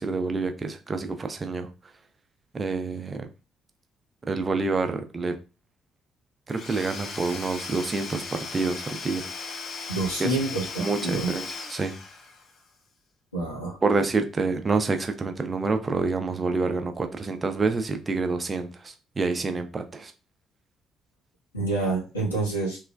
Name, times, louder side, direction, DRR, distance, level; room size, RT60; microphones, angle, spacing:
voice 1, 0.0-1.7 2.5-3.3 4.3-5.3 6.5-9.3 10.2-10.3 10.8-12.0 13.8-20.1, right 3 dB, 30° right, 0.5 m, -27 dB
Domestic sounds home sounds / Tools, 6.5-12.6, left 4 dB, 55° left, 0.6 m, -37 dB
voice 2, 9.9-11.3 13.3-13.8 21.5-22.8, right 2 dB, 85° left, 0.8 m, -27 dB
3.1 x 2.1 x 2.2 m
figure-of-eight pair, 45°, 0 cm